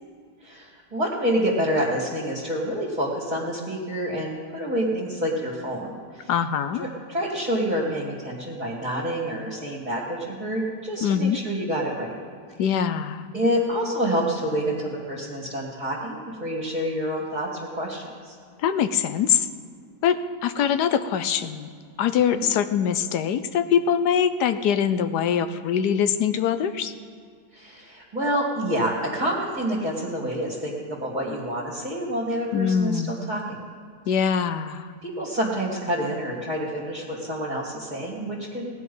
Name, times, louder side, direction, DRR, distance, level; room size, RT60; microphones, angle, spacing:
voice 1, 0.4-6.3 6.8-12.1 13.3-18.3 22.3-22.5 27.5-33.6 35.0-38.7, equal, 25° right, -5 dB, 2.5 m, -28 dB
voice 2, 6.3-6.8 11.0-11.4 12.6-13.3 18.6-19.5 20.0-21.7 22.0-26.9 32.5-33.2 34.1-34.9, left 8 dB, 75° left, 11 dB, 1.2 m, -23 dB
18.5 x 10.5 x 5.5 m, 2.2 s
omnidirectional pair, 1.8 m